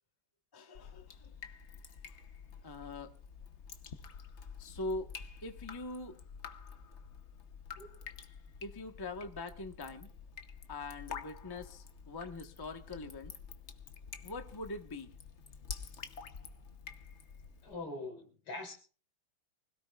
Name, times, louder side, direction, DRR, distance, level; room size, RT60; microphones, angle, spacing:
voice 1, 0.5-1.3 2.6-3.1 4.6-5.1 5.4-6.2 8.6-10.1 10.7-13.3 14.2-15.1, left 2 dB, 15° left, 5 dB, 0.8 m, -42 dB
Drip, 0.7-17.7, left 6 dB, 50° left, 0.8 m, -49 dB
voice 2, 17.6-18.7, left 2 dB, 85° left, 2 dB, 4.1 m, -43 dB
24.5 x 17.0 x 2.4 m, 0.38 s
omnidirectional pair, 2.4 m